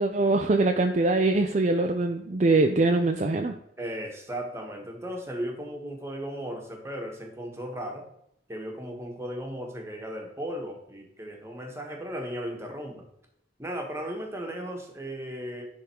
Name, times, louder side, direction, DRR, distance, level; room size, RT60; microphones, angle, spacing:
voice 1, 0.0-3.5, right 2 dB, 40° right, 4 dB, 0.4 m, -23 dB
voice 2, 3.8-8.1 8.5-13.1 13.6-15.6, equal, 15° right, 2 dB, 1.3 m, -36 dB
10.5 x 3.6 x 4.4 m, 0.74 s
head